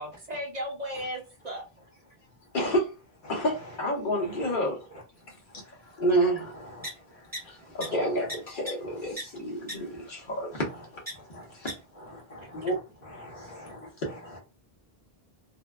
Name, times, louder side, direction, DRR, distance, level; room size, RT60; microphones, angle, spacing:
voice 1, 0.0-1.8 4.5-4.6 4.8-5.0 12.4-12.5, equal, 45° right, 0.7 m, -37 dB
voice 2, 2.5-2.9 3.3-4.9 6.0-6.5 7.4-10.8 11.5-11.7 12.5-12.8, right 1 dB, 55° left, 1.1 m, -29 dB
sound 1, 6.8-6.9 7.3-7.4 7.8-7.9 8.3-8.4 8.7-8.8 9.2-9.3 9.7-9.8 11.1-11.2 11.7-11.8, equal, 10° right, 0.7 m, -34 dB
voice 3, 12.1-12.7 13.2-13.9, left 1 dB, 35° left, 0.9 m, -45 dB
2.7 x 2.2 x 2.3 m
omnidirectional pair, 1.0 m